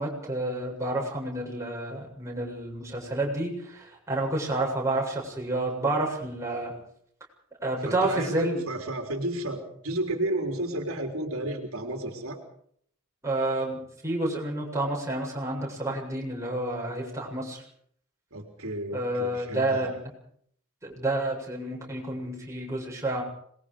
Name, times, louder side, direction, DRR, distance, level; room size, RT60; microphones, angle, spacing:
voice 1, 0.0-6.7 7.6-8.6 13.2-17.6 18.9-19.9 20.8-23.2, right 2 dB, 15° right, -3 dB, 7.5 m, -29 dB
voice 2, 7.9-12.4 18.3-20.0, right 1 dB, 75° right, 3 dB, 3.7 m, -32 dB
26.5 x 21.5 x 5.0 m, 0.64 s
head